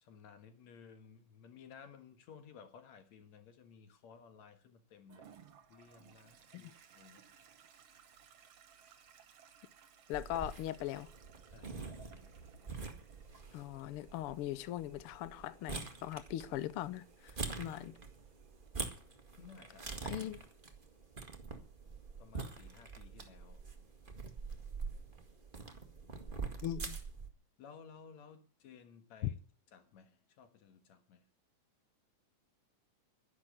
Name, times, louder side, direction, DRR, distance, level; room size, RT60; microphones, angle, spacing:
voice 1, 0.0-5.3 5.7-7.4 11.5-12.3 12.6-12.8 19.4-20.3 22.2-23.6 27.6-29.4 29.7-31.2, left 6 dB, 65° left, 2.8 m, -57 dB
Toilet flush, 5.1-18.7, right 7 dB, 55° right, 2.3 m, -62 dB
voice 2, 10.1-11.1 13.5-17.9 20.0-20.4 26.6-27.0 29.2-29.3, left 13 dB, 90° left, 1.2 m, -40 dB
sound 1, 10.1-27.3, right 4 dB, 25° right, 1.3 m, -45 dB
11.5 x 11.0 x 8.0 m
omnidirectional pair, 3.6 m